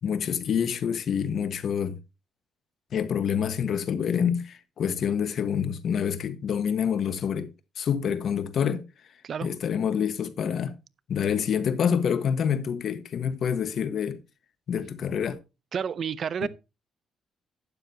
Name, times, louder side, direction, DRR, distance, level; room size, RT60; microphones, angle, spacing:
voice 1, 0.0-2.0 2.9-8.8 9.4-10.7 11.1-14.2 14.7-15.4 16.4-16.5, left 7 dB, 60° left, 1.4 m, -27 dB
voice 2, 15.7-16.5, right 7 dB, 55° right, 0.6 m, -30 dB
12.0 x 9.1 x 2.9 m
cardioid pair, 90°, 0 cm